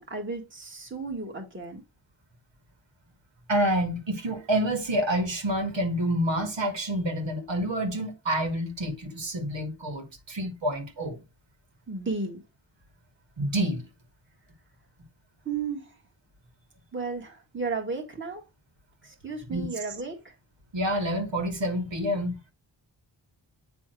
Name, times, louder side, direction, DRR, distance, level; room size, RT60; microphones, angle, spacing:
voice 1, 0.0-1.8 11.9-12.4 15.5-15.9 16.9-18.4 19.0-20.3, right 4 dB, 25° right, 1.8 m, -34 dB
voice 2, 3.5-11.2 13.4-13.8 19.5-19.7 20.7-22.4, right 1 dB, 75° right, 2.2 m, -28 dB
8.7 x 3.5 x 4.6 m
wide cardioid pair, 110°, 45 cm